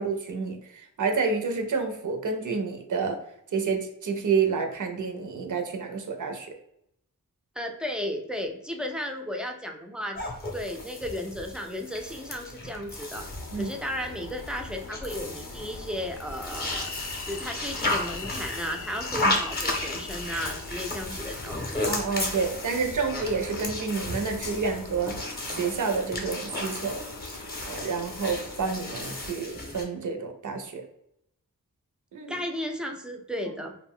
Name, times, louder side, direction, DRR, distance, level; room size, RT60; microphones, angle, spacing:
voice 1, 0.0-3.2 3.5-6.5 13.5-13.7 19.2-19.3 21.9-27.0 27.7-30.8 32.1-32.3, right 5 dB, 65° right, 5 dB, 0.5 m, -29 dB
voice 2, 7.6-10.2 10.5-13.3 13.6-16.9 17.2-21.9 32.3-33.7, left 1 dB, 5° right, 3 dB, 0.3 m, -34 dB
sound 1, 10.1-29.8, left 2 dB, 30° left, 0.6 m, -34 dB
Train, 13.1-29.3, left 4 dB, 70° left, 0.5 m, -42 dB
2.4 x 2.1 x 3.5 m, 0.76 s
wide cardioid pair, 95°, 33 cm